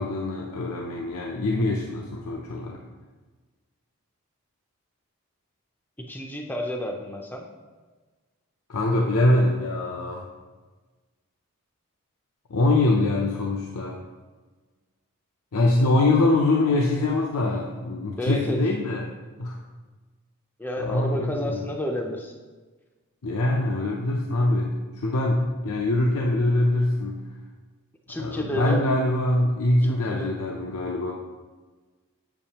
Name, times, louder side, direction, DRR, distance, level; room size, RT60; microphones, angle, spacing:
voice 1, 0.0-2.8 8.7-10.3 12.5-14.0 15.5-19.1 19.4-19.6 20.8-21.7 23.2-27.2 28.2-31.1, left 2 dB, 80° left, 0 dB, 0.6 m, -23 dB
voice 2, 6.1-7.4 18.2-18.6 20.6-22.3 28.1-28.8 29.8-30.3, equal, 10° left, 1 dB, 0.4 m, -30 dB
7.2 x 7.1 x 2.9 m, 1.3 s
head